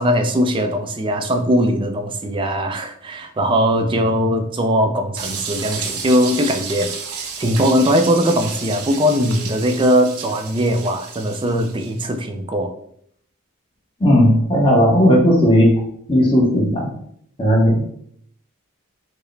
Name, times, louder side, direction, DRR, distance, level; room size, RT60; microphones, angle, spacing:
voice 1, 0.0-12.7, equal, 25° right, 5 dB, 0.3 m, -20 dB
sound 1, 5.2-12.0, right 6 dB, 85° right, 0.6 m, -32 dB
voice 2, 14.0-15.8 16.1-16.9 17.4-17.8, equal, 25° left, -3 dB, 0.8 m, -14 dB
4.6 x 2.0 x 3.2 m, 0.67 s
head